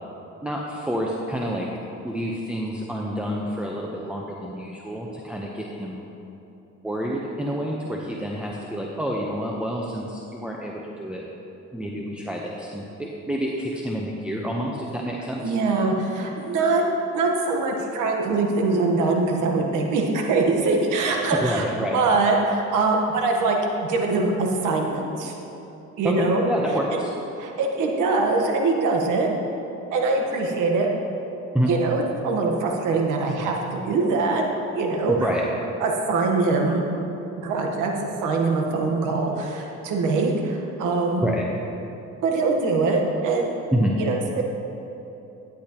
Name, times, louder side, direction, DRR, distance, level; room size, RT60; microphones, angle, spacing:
voice 1, 0.4-1.7 2.0-6.1 6.8-11.2 11.7-15.5 21.4-22.0 26.0-27.1 31.5-31.7 35.1-35.4 41.2-41.5 43.7-43.9, equal, 5° right, -2 dB, 0.9 m, -28 dB
voice 2, 15.4-16.9 17.1-23.6 23.9-25.3 26.0-26.4 26.9-27.0 27.4-29.3 29.9-30.9 31.7-35.3 35.8-36.8 37.4-37.9 38.2-41.2 42.2-43.5 44.0-44.4, right 3 dB, 90° right, 1 dB, 1.3 m, -23 dB
12.0 x 10.0 x 3.0 m, 2.9 s
cardioid pair, 90°, 30 cm